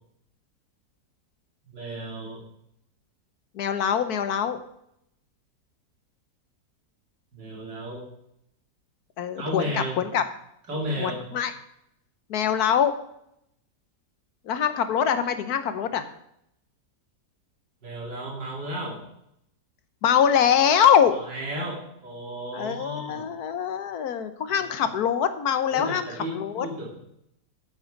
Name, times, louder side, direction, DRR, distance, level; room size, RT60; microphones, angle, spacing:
voice 1, 1.7-2.4 7.3-8.0 9.4-10.0 10.7-11.2 17.8-19.1 21.3-23.3 25.7-27.0, equal, 80° right, -3 dB, 4.0 m, -33 dB
voice 2, 3.5-4.6 9.2-10.2 11.0-11.5 12.3-12.9 14.4-16.1 20.0-21.1 22.5-26.7, left 8 dB, 65° left, 10 dB, 1.3 m, -23 dB
9.1 x 8.0 x 5.2 m, 0.76 s
omnidirectional pair, 1.8 m